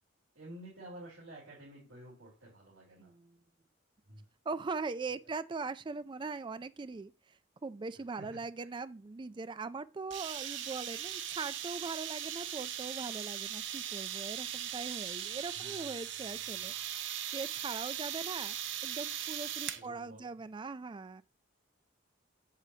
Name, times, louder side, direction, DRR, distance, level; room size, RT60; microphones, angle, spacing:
voice 1, 0.4-3.1 4.1-4.2 8.2-8.7 15.5-16.0 19.7-20.3, right 1 dB, 85° right, 3.6 m, -51 dB
voice 2, 3.0-3.4 4.5-16.7 17.3-18.6 18.8-21.2, right 4 dB, 25° right, 0.3 m, -41 dB
sound 1, 10.1-19.9, right 10 dB, 65° right, 0.7 m, -39 dB
8.3 x 7.5 x 2.8 m
head